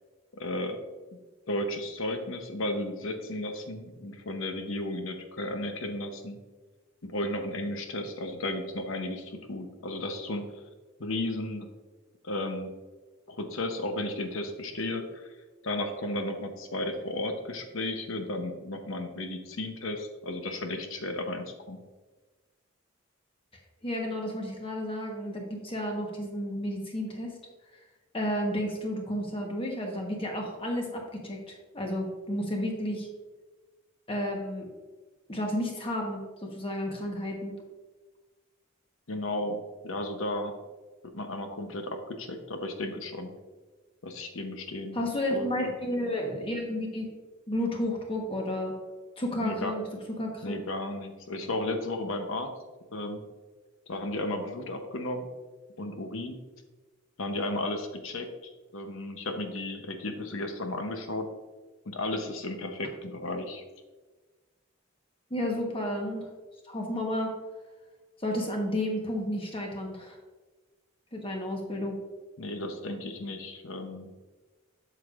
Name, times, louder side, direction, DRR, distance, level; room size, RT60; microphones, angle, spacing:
voice 1, 0.3-0.8 1.5-6.4 7.0-10.5 11.0-11.7 12.2-12.7 13.3-15.3 15.6-21.8 39.1-40.6 41.1-43.3 44.0-45.0 45.3-45.5 49.4-49.7 50.4-52.5 52.9-53.2 53.9-55.3 55.8-56.4 57.2-61.3 61.9-63.6 72.4-74.1, left 1 dB, 75° left, 6 dB, 0.8 m, -34 dB
voice 2, 23.8-27.3 28.1-33.1 34.1-34.7 35.3-37.5 44.9-47.1 47.5-48.8 49.2-49.8 50.2-50.5 65.3-66.3 66.7-67.3 68.2-70.2 71.1-71.9, left 1 dB, 25° left, 1 dB, 1.2 m, -32 dB
7.9 x 6.8 x 2.5 m, 1.3 s
head